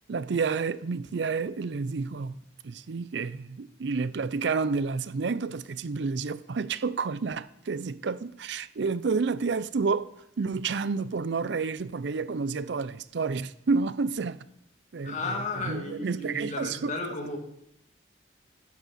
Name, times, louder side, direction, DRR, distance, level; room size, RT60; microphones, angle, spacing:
voice 1, 0.1-2.3 2.6-10.1 10.4-14.4 14.9-15.4 15.6-16.9, right 4 dB, 70° right, 0.5 m, -30 dB
voice 2, 15.0-17.4, left 3 dB, 40° left, 2.3 m, -34 dB
12.0 x 9.6 x 4.2 m
head